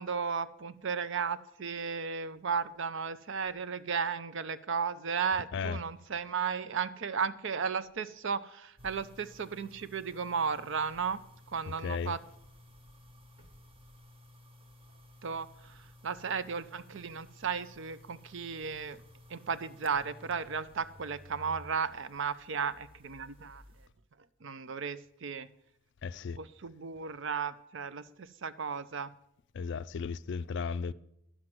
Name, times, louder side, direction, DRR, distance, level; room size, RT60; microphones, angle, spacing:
voice 1, 0.0-11.2 11.5-12.2 15.2-19.0 19.3-23.6 24.4-25.5 26.4-29.1, right 6 dB, 60° right, 0.6 m, -35 dB
sound 1, 8.8-23.9, left 1 dB, 25° right, 1.1 m, -56 dB
voice 2, 11.8-12.1 26.0-26.4 29.5-30.9, left 5 dB, 55° left, 0.4 m, -35 dB
11.0 x 6.0 x 7.7 m
head